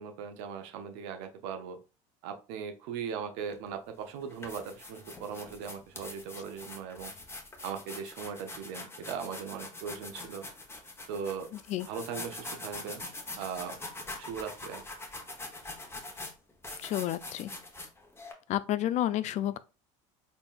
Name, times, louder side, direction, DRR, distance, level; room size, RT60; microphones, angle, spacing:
voice 1, 0.0-1.8 2.2-7.1 7.6-10.5 11.1-11.5 11.9-13.1 13.4-13.8 14.2-14.8, right 6 dB, 75° right, 0.8 m, -39 dB
sound 1, 3.5-3.7 4.2-18.3, left 2 dB, 15° left, 1.0 m, -44 dB
voice 2, 16.8-17.5 18.5-19.6, left 13 dB, 50° left, 0.4 m, -30 dB
4.0 x 3.7 x 2.4 m
supercardioid pair, 95°, 15 cm